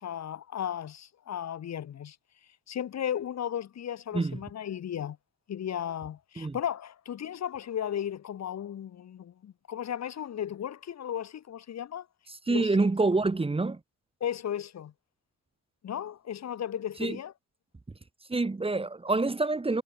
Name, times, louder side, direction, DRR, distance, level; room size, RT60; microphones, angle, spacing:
voice 1, 0.0-2.2 2.7-5.2 5.5-12.1 12.5-12.7 14.2-14.9 15.8-17.3, left 9 dB, 60° left, 3.5 m, -35 dB
voice 2, 12.5-13.8 17.0-17.2 18.3-19.8, right 3 dB, 20° right, 1.9 m, -26 dB
cardioid pair, 90°, 30 cm